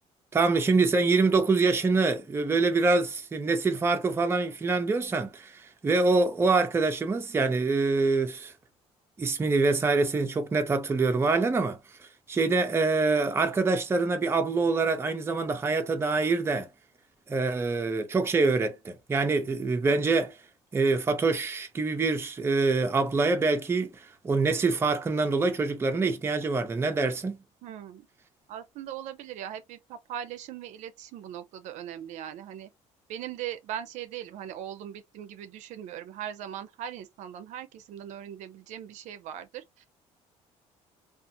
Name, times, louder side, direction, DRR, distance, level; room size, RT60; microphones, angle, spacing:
voice 1, 0.3-5.5 5.8-8.5 9.2-11.8 12.3-16.7 17.3-20.3 20.7-23.9 24.2-27.4, right 3 dB, 20° right, 0.5 m, -25 dB
voice 2, 27.6-28.1 28.5-32.7 33.1-39.9, right 10 dB, 75° right, 0.5 m, -39 dB
2.5 x 2.4 x 2.6 m
cardioid pair, 120°, 12 cm